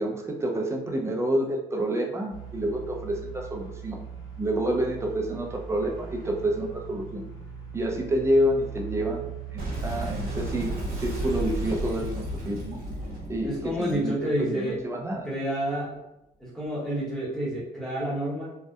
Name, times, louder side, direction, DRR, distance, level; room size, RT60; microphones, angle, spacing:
voice 1, 0.0-4.0 4.4-7.3 7.7-12.8 13.3-13.5 13.8-15.3, right 1 dB, 15° right, 0 dB, 0.4 m, -28 dB
sound 1, 2.3-11.6, right 8 dB, 50° left, 1.1 m, -40 dB
Boom, 9.6-14.8, equal, 60° right, 0.8 m, -33 dB
voice 2, 13.4-14.8 15.2-15.9 16.4-18.5, right 1 dB, 5° left, -8 dB, 0.9 m, -29 dB
2.6 x 2.1 x 2.3 m, 0.89 s
cardioid pair, 110°, 17 cm